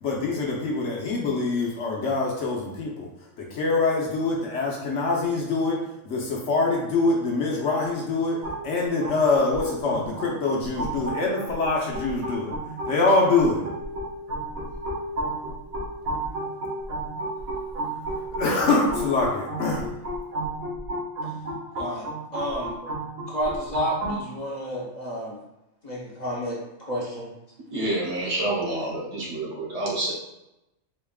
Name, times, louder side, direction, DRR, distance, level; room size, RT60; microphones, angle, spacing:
voice 1, 0.0-3.1 3.4-5.8 6.0-8.4 8.6-12.5 12.9-13.6 18.4-19.9, left 3 dB, 65° left, -2 dB, 1.1 m, -24 dB
sound 1, 8.4-24.2, right 1 dB, 85° right, 1.7 m, -33 dB
voice 2, 21.8-22.1 22.3-22.8 23.3-25.4 25.8-27.3, equal, 35° left, -6 dB, 0.9 m, -31 dB
voice 3, 27.7-30.1, right 1 dB, 55° right, -4 dB, 1.2 m, -28 dB
4.4 x 3.4 x 2.3 m, 0.88 s
omnidirectional pair, 1.4 m